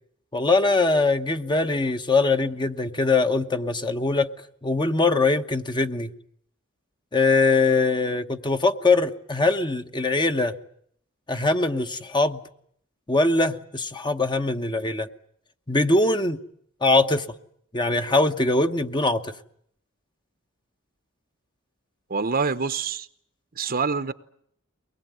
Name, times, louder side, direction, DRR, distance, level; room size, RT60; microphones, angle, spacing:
voice 1, 0.3-4.3 4.6-6.1 7.1-10.5 11.3-12.4 13.1-15.1 15.7-16.4 16.8-17.3 17.7-19.3, left 3 dB, 20° left, 1.0 m, -22 dB
voice 2, 22.1-23.1 23.6-24.1, right 5 dB, 45° right, 1.0 m, -26 dB
23.5 x 20.5 x 9.3 m
head